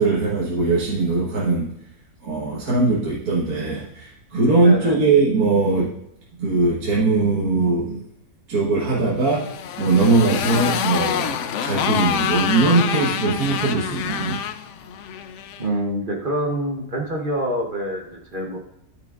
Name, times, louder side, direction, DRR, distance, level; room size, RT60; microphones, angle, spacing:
voice 1, 0.0-1.7 2.2-5.9 6.4-8.0 8.5-11.4 11.6-14.4, right 3 dB, 60° right, -6 dB, 1.8 m, -20 dB
voice 2, 4.6-5.0 15.6-18.6, equal, 35° right, 0 dB, 1.0 m, -26 dB
Motorcycle, 9.2-15.7, left 8 dB, 80° left, 0.6 m, -26 dB
13.0 x 5.8 x 2.5 m, 0.77 s
omnidirectional pair, 1.8 m